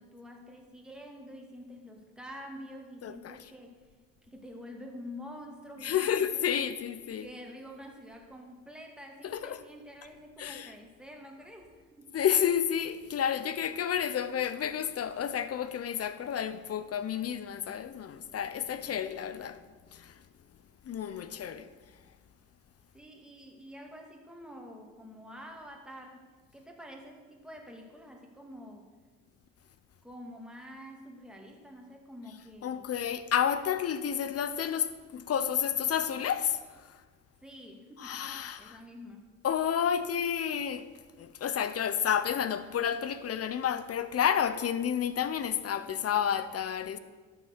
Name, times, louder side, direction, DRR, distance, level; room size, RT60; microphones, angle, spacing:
voice 1, 0.0-3.8 4.2-6.8 7.2-12.1 22.9-28.9 30.0-32.8 37.4-39.3, equal, 5° right, 2.3 m, -47 dB
voice 2, 3.0-3.4 5.8-7.3 9.2-9.6 10.4-10.7 12.1-19.6 19.9-20.2 20.8-21.7 32.6-37.0 38.0-38.8 39.4-40.9 41.2-47.0, left 9 dB, 50° left, 0.7 m, -30 dB
12.5 x 7.1 x 6.6 m
cardioid pair, 90°, 30 cm